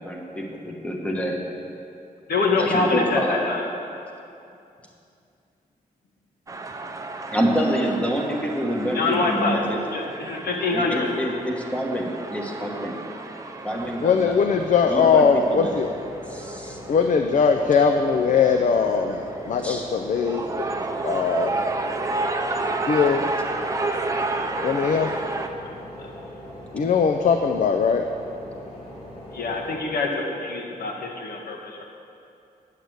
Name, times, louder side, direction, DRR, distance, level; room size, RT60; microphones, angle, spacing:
voice 1, 0.0-1.4 2.6-3.4 7.3-9.8 10.7-13.0 13.6-14.4 14.9-15.8 16.3-16.8 19.6-19.8, equal, 10° left, 0 dB, 1.2 m, -27 dB
voice 2, 2.3-3.6 8.9-9.6 9.9-11.1 29.3-31.8, left 3 dB, 80° left, 0 dB, 1.6 m, -25 dB
sound 1, 6.5-25.5, right 3 dB, 20° right, 0.6 m, -32 dB
sound 2, 13.7-29.7, left 1 dB, 40° left, 2.9 m, -40 dB
voice 3, 14.0-15.9 16.9-20.6 21.0-21.5 22.8-23.3 24.6-25.1 26.7-28.1, left 6 dB, 55° left, 5 dB, 0.5 m, -20 dB
9.7 x 6.7 x 7.8 m, 2.6 s
wide cardioid pair, 165°, 15 cm